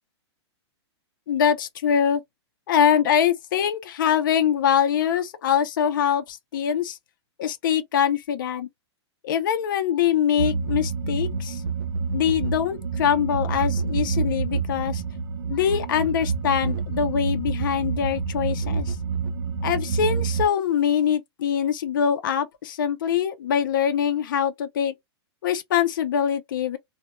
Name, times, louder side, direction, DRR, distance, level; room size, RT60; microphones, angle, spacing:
voice 1, 1.3-2.2 2.7-7.0 7.4-8.7 9.2-11.6 12.1-15.0 15.5-19.0 19.6-24.9 25.4-26.8, left 8 dB, 50° left, 0.4 m, -23 dB
sound 1, 10.4-20.4, right 5 dB, 55° right, 0.4 m, -27 dB
2.1 x 2.0 x 2.9 m
hypercardioid pair, 180°, 15 cm